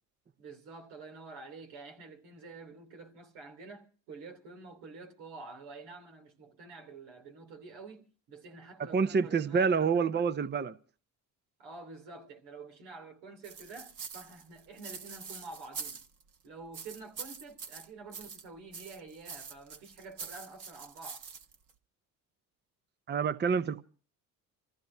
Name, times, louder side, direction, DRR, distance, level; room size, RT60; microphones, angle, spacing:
voice 1, 0.4-9.7 11.6-16.0 16.4-21.2, right 3 dB, 90° right, 3.2 m, -48 dB
voice 2, 8.8-10.8 23.1-23.8, right 5 dB, 30° right, 0.7 m, -28 dB
sound 1, 13.4-16.3 16.7-18.5 18.7-21.7, right 6 dB, 55° right, 1.5 m, -44 dB
27.5 x 15.0 x 2.7 m
supercardioid pair, 75°, 37 cm